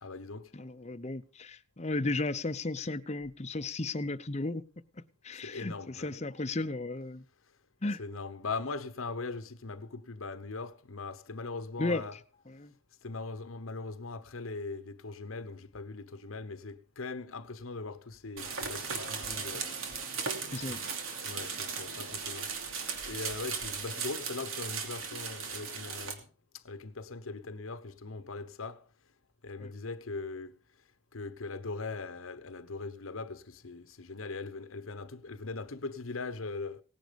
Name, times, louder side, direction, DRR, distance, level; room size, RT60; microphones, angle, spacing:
voice 1, 0.0-0.5 5.3-6.1 8.0-12.1 13.0-19.7 20.5-20.8 21.2-22.5 23.1-26.3 26.6-28.8 29.4-30.5 31.1-36.8, left 3 dB, 90° left, 1.1 m, -40 dB
voice 2, 0.5-4.6 5.2-7.2 7.8-8.0 11.8-12.2 12.5-12.7 20.5-20.8 29.6-29.7, left 2 dB, 30° left, 0.7 m, -34 dB
sound 1, 18.4-26.1, right 5 dB, 85° right, 2.8 m, -37 dB
18.0 x 10.5 x 5.2 m
head